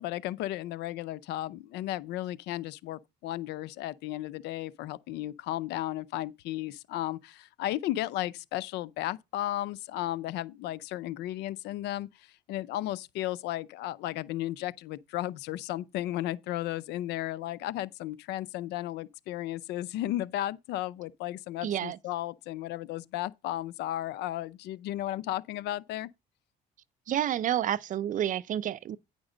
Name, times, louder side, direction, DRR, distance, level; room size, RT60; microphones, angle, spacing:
voice 1, 0.0-26.1, left 14 dB, 85° left, 0.6 m, -34 dB
voice 2, 21.6-22.0 27.1-29.0, right 11 dB, 50° right, 0.6 m, -29 dB
9.6 x 5.2 x 5.0 m
cardioid pair, 110°, 17 cm